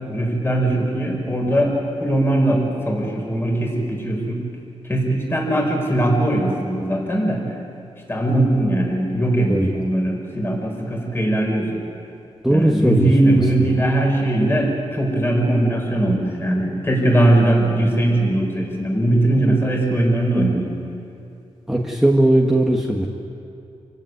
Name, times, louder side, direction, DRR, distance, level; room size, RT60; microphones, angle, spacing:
voice 1, 0.0-1.7 2.0-4.4 4.8-7.6 8.1-11.8 12.4-20.7, right 1 dB, 20° left, 0 dB, 4.7 m, -20 dB
voice 2, 12.4-13.4 13.7-13.8 21.7-23.1, right 1 dB, 5° right, -1 dB, 1.5 m, -18 dB
27.5 x 16.0 x 9.4 m, 2.6 s
wide cardioid pair, 135°, 12 cm